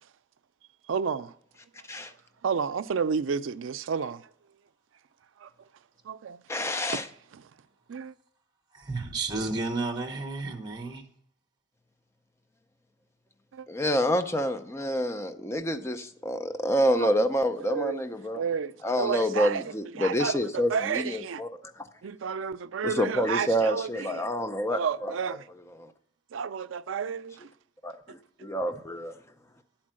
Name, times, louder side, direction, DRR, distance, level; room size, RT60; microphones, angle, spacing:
voice 1, 0.9-1.3 2.4-4.2 5.4-5.5 6.1-6.4 6.9-7.0 7.3-7.4 7.9-8.1 13.5-13.7 17.0-17.1 17.6-18.0 18.3-19.6 19.9-21.4 22.0-24.3 24.7-25.4 26.3-27.5, right 6 dB, 85° right, 0.4 m, -31 dB
voice 2, 6.5-7.1 13.7-18.4 18.8-21.9 22.8-25.1 25.8-25.9 27.8-29.2, equal, 15° left, 0.6 m, -28 dB
voice 3, 8.7-11.0, right 3 dB, 20° right, 0.9 m, -32 dB
10.5 x 4.5 x 7.5 m
head